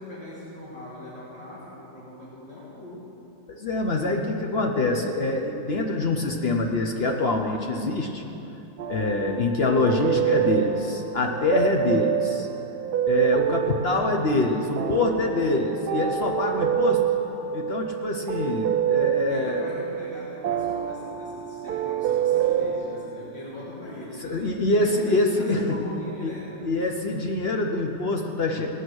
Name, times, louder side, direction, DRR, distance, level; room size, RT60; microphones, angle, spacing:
voice 1, 0.0-3.1 19.3-24.5 24.8-26.7, left 1 dB, 75° left, -8 dB, 2.5 m, -40 dB
voice 2, 3.5-8.2 8.9-12.5 13.0-17.1 17.5-19.7 24.2-25.8 26.2-26.3 26.6-28.7, left 2 dB, 55° left, 2 dB, 0.7 m, -25 dB
sound 1, 8.8-23.1, right 9 dB, 65° right, 1.2 m, -27 dB
18.0 x 6.4 x 6.2 m, 3.0 s
omnidirectional pair, 2.0 m